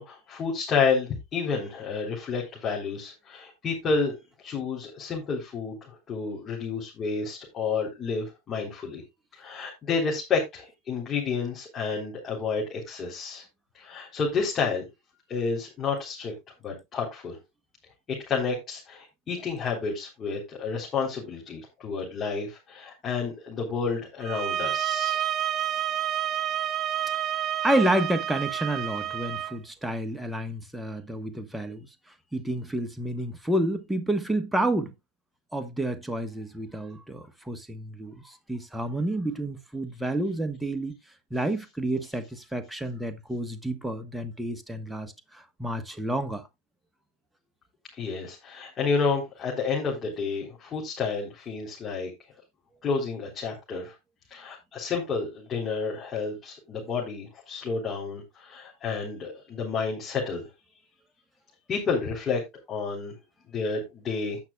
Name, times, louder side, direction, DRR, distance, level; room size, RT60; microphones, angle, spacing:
voice 1, 0.0-4.2 4.4-9.0 9.3-13.4 13.7-14.9 15.3-16.3 16.6-17.4 18.1-25.2 47.9-52.1 52.8-53.9 54.3-60.5 61.7-62.4 62.7-63.2 63.5-64.4, left 5 dB, 30° left, 3.9 m, -30 dB
sound 1, 24.2-29.6, right 11 dB, 30° right, 0.8 m, -29 dB
voice 2, 27.6-31.8 32.3-34.9 35.5-40.9 41.3-46.5, right 1 dB, 5° right, 1.3 m, -29 dB
17.5 x 5.9 x 2.3 m
hypercardioid pair, 110°, 0 cm